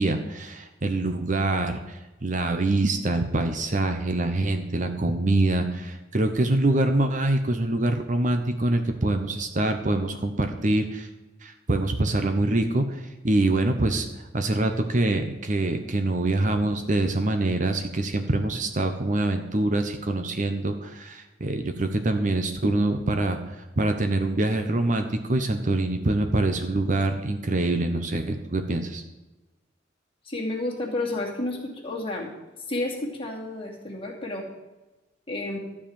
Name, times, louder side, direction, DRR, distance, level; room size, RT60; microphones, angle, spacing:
voice 1, 0.0-11.1 11.4-14.1 14.3-29.0, right 2 dB, 40° right, 6 dB, 0.9 m, -25 dB
voice 2, 30.2-32.3 32.7-34.5 35.3-35.6, left 2 dB, 30° left, -2 dB, 2.4 m, -31 dB
13.0 x 4.9 x 8.8 m, 1.1 s
head